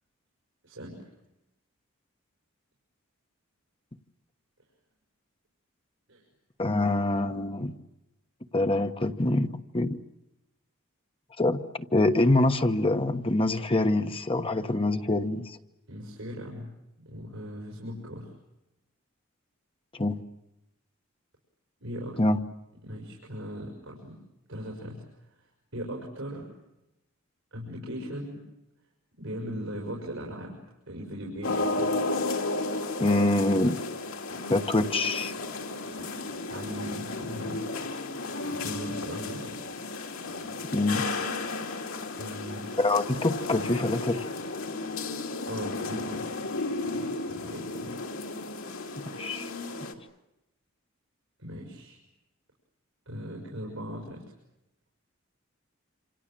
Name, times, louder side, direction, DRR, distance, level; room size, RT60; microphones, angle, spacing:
voice 1, 0.6-1.0 6.1-6.2 6.7-6.8 15.9-16.7 17.0-18.3 21.8-22.2 22.8-24.2 24.5-25.0 25.7-26.5 27.5-28.4 29.2-30.6 30.9-32.0 35.9-37.6 38.0-39.6 42.2-42.7 45.5-46.3 46.8-48.0 51.4-52.0 53.1-54.2, equal, 65° right, -1 dB, 6.0 m, -39 dB
voice 2, 6.6-7.7 8.5-10.0 11.4-15.6 19.9-20.2 22.2-22.4 33.0-33.8 34.5-35.3 40.7-41.0 42.8-44.3 49.2-49.5, left 2 dB, 25° left, 8 dB, 1.2 m, -25 dB
sound 1, 31.4-49.9, left 3 dB, 70° left, 2.9 m, -33 dB
27.5 x 27.0 x 7.5 m, 0.93 s
head